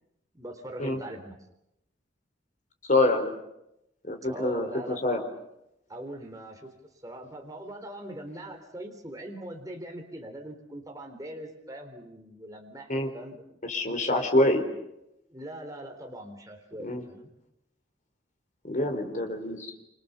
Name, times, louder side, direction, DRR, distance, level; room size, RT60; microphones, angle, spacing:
voice 1, 0.3-1.4 4.2-5.0 5.9-6.7 7.0-13.4 15.3-17.3, right 1 dB, 20° right, 2 dB, 3.7 m, -41 dB
voice 2, 2.9-3.3 4.0-5.2 12.9-13.1 13.7-14.6 16.8-17.0 18.6-19.7, left 2 dB, 45° left, 5 dB, 4.4 m, -26 dB
28.0 x 27.5 x 7.0 m, 0.85 s
head